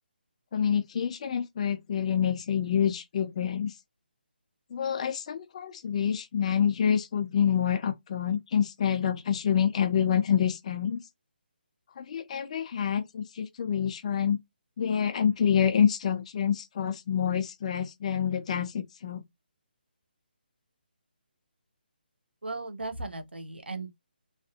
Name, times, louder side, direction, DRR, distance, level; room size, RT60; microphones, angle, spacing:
voice 1, 0.5-3.7 4.7-11.0 12.0-14.4 14.8-19.2, left 8 dB, 40° left, 0.5 m, -27 dB
voice 2, 22.4-23.9, right 3 dB, 85° right, 0.6 m, -36 dB
2.6 x 2.3 x 2.4 m
figure-of-eight pair, 150°, 6 cm